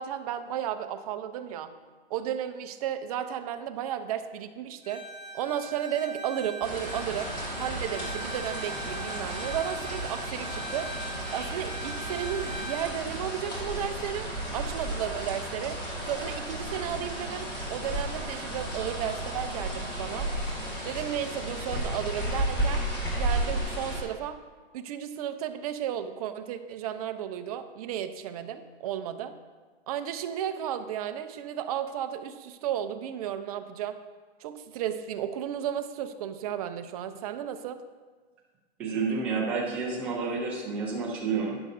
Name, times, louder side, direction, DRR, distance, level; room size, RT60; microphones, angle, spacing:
voice 1, 0.0-1.7 2.1-5.0 5.3-7.3 7.6-10.9 11.3-15.8 16.1-20.3 20.8-22.8 23.1-24.4 24.7-29.3 29.9-34.0 34.4-37.8, right 10 dB, 35° right, 8 dB, 0.6 m, -33 dB
Bowed string instrument, 4.8-12.9, right 2 dB, 55° left, 3.0 m, -41 dB
sound 1, 6.6-24.0, right 1 dB, 15° left, 1.9 m, -33 dB
voice 2, 38.8-41.6, right 4 dB, 5° right, -3 dB, 0.3 m, -30 dB
11.5 x 9.7 x 2.6 m, 1.4 s
hypercardioid pair, 150°, 33 cm